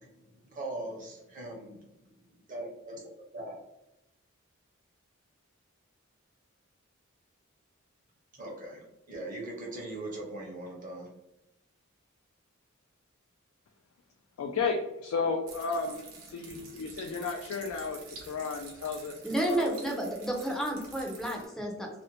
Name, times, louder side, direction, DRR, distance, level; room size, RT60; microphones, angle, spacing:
voice 1, 0.0-2.2 2.5-3.0 3.3-3.6 8.4-11.1, right 2 dB, 40° right, -1 dB, 0.7 m, -41 dB
voice 2, 14.4-19.1 19.4-19.9, left 4 dB, 90° left, 3 dB, 0.3 m, -33 dB
sound 1, 15.5-21.5, right 4 dB, 90° right, 0.8 m, -48 dB
voice 3, 19.2-21.9, right 1 dB, ahead, 0 dB, 0.4 m, -31 dB
2.5 x 2.1 x 2.7 m, 0.89 s
head